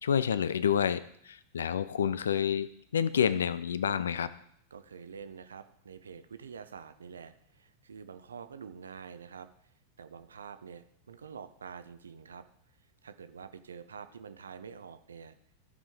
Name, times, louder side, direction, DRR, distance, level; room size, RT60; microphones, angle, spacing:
voice 1, 0.0-4.3, left 8 dB, 65° left, 17 dB, 0.4 m, -29 dB
voice 2, 4.7-12.5 13.0-15.4, right 6 dB, 70° right, 11 dB, 0.6 m, -47 dB
14.5 x 5.2 x 3.7 m, 0.69 s
figure-of-eight pair, 90°, 0 cm